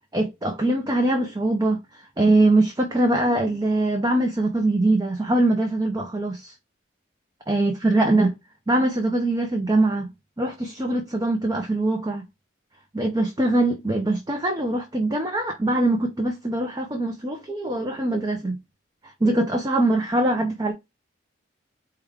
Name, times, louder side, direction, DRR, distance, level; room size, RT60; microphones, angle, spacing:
voice 1, 0.1-6.5 7.5-8.3 8.7-10.1 10.4-12.2 12.9-18.6 19.0-20.7, right 2 dB, 20° right, 0.5 m, -22 dB
4.8 x 2.3 x 3.5 m
head